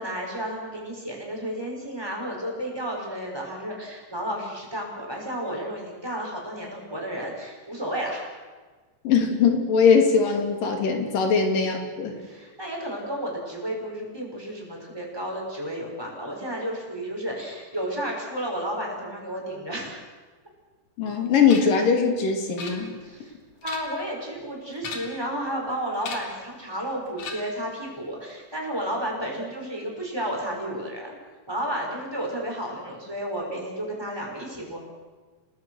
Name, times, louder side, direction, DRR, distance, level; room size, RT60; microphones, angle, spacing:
voice 1, 0.0-8.2 11.3-11.5 12.2-20.1 23.0-23.3 23.6-31.1 31.5-34.8, right 1 dB, 5° right, -1 dB, 5.7 m, -32 dB
voice 2, 9.0-12.2 21.0-23.0, left 5 dB, 85° left, 4 dB, 4.5 m, -21 dB
sound 1, 21.5-21.8 22.6-23.2 23.5-24.1 24.8-25.3 26.0-26.4 27.2-27.7, left 5 dB, 70° left, 3.8 m, -38 dB
29.0 x 19.5 x 6.5 m, 1.4 s
omnidirectional pair, 3.8 m